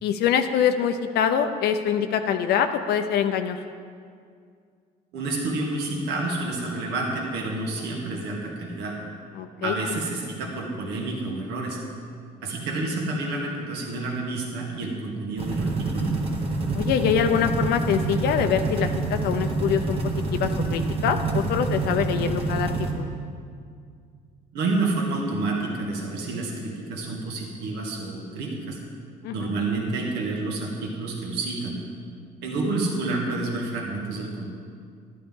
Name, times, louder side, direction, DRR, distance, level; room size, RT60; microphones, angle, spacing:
voice 1, 0.0-3.6 9.4-9.7 16.7-20.0 20.3-23.1 29.2-29.5, left 8 dB, 75° left, 6 dB, 0.6 m, -24 dB
voice 2, 5.1-8.9 9.6-11.8 12.4-16.1 24.5-28.8 29.3-31.8 32.4-34.5, right 2 dB, 80° right, -1 dB, 1.8 m, -29 dB
sound 1, 15.4-22.9, right 3 dB, 35° right, 1.7 m, -27 dB
11.5 x 11.0 x 3.7 m, 2.2 s
cardioid pair, 110°, 17 cm